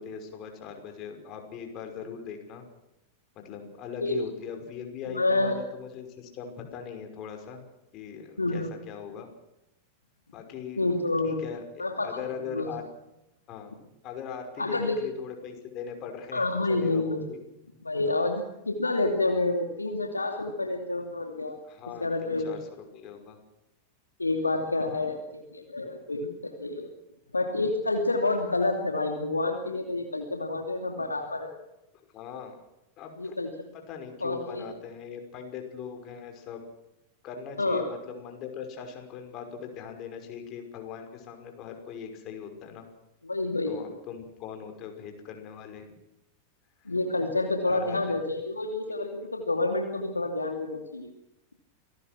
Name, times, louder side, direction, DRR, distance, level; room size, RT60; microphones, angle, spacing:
voice 1, 0.0-2.6 3.4-7.6 7.9-9.3 10.3-10.9 11.2-12.9 13.5-13.7 14.0-17.4 21.6-22.7 22.9-23.4 24.8-25.0 32.1-32.6 33.0-33.3 33.9-36.6 37.2-42.9 43.7-45.9 47.7-48.0 49.0-49.3, left 7 dB, 35° left, 5 dB, 5.6 m, -40 dB
voice 2, 5.1-5.6 8.4-8.7 10.8-11.4 11.8-12.1 12.5-12.7 14.6-15.0 16.3-17.2 17.8-21.6 22.0-22.6 24.2-26.9 27.3-31.5 33.2-33.7 34.2-34.6 37.6-37.8 43.2-43.9 46.9-51.1, left 2 dB, 80° left, 4 dB, 2.6 m, -28 dB
27.0 x 18.5 x 6.2 m, 0.91 s
figure-of-eight pair, 90°, 0 cm